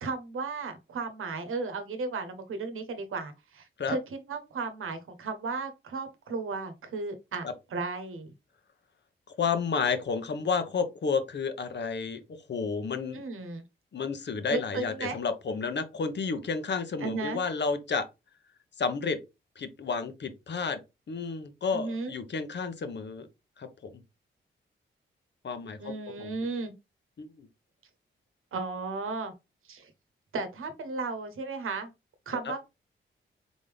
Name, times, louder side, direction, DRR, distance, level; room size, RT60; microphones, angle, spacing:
voice 1, 0.0-8.3 13.1-13.6 14.5-15.2 17.0-17.4 21.7-22.1 25.8-26.7 28.5-29.3 29.7-29.9 30.3-31.9 32.3-32.6, right 3 dB, 75° right, 1.0 m, -34 dB
voice 2, 9.4-12.2 12.5-13.2 13.9-18.1 18.8-19.2 19.6-20.8 21.1-23.3 23.6-24.0 25.4-25.9 26.2-26.3 27.2-27.5 32.3-32.4, left 5 dB, 55° left, 0.9 m, -31 dB
4.0 x 3.6 x 3.3 m
cardioid pair, 60°, 21 cm